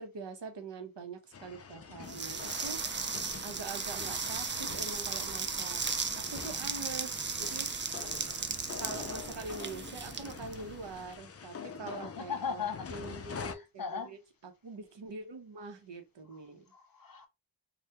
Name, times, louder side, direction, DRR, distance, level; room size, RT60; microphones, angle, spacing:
voice 1, 0.0-3.1 3.4-5.8 6.2-7.7 8.8-16.6, right 4 dB, 70° right, 0.9 m, -44 dB
sound 1, 1.3-13.6, left 6 dB, 35° left, 0.4 m, -46 dB
sound 2, 2.1-11.0, right 5 dB, 30° right, 0.4 m, -36 dB
voice 2, 11.8-12.9 13.4-14.1 16.7-17.3, left 6 dB, 50° left, 0.9 m, -38 dB
3.3 x 2.3 x 2.9 m
wide cardioid pair, 100°, 44 cm